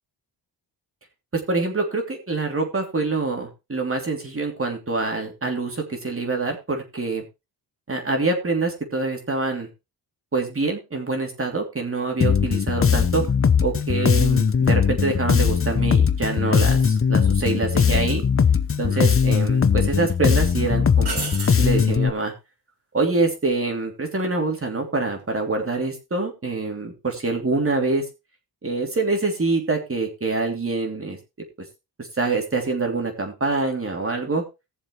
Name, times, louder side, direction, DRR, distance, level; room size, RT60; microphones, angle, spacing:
voice 1, 1.3-7.2 7.9-9.7 10.3-13.2 13.6-18.2 18.8-22.3 22.9-28.1 28.6-31.2 32.0-34.4, right 3 dB, 30° right, 2 dB, 3.2 m, -25 dB
Bass guitar, 12.2-22.1, left 6 dB, 30° left, 0.8 m, -20 dB
sound 1, 17.7-17.8 18.9-19.6 20.0-20.1 21.0-21.7 24.8-25.2, right 4 dB, 65° right, 3.3 m, -32 dB
18.5 x 7.2 x 3.2 m, 0.26 s
cardioid pair, 105°, 43 cm